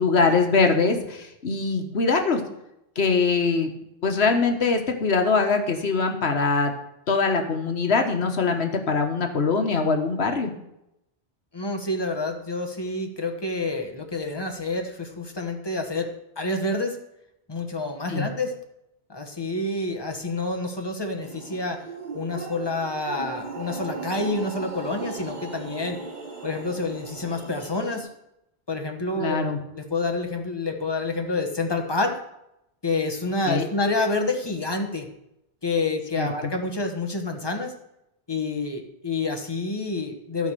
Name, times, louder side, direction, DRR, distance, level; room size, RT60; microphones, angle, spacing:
voice 1, 0.0-2.4 3.0-3.7 4.0-6.7 7.1-10.5 18.1-18.3 29.2-29.6 33.5-33.7 36.2-36.3, left 4 dB, 80° left, 5 dB, 1.5 m, -22 dB
voice 2, 11.5-16.1 16.4-17.0 17.5-18.5 19.1-21.8 22.1-26.0 26.4-28.1 28.7-29.4 29.7-32.2 32.8-35.1 35.6-37.7 38.3-40.5, left 2 dB, 25° left, 4 dB, 1.3 m, -28 dB
sound 1, 21.2-28.0, right 4 dB, 45° right, 1.5 m, -37 dB
12.0 x 5.0 x 6.7 m, 0.84 s
omnidirectional pair, 1.1 m